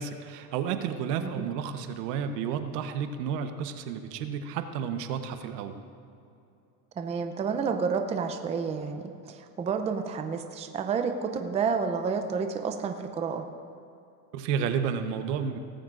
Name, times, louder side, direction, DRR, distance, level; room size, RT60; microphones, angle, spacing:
voice 1, 0.0-5.8 14.3-15.6, right 7 dB, 80° right, 8 dB, 1.2 m, -31 dB
voice 2, 7.0-13.4, right 5 dB, 15° right, 6 dB, 0.5 m, -30 dB
18.0 x 14.5 x 2.6 m, 2.7 s
supercardioid pair, 140°, 47 cm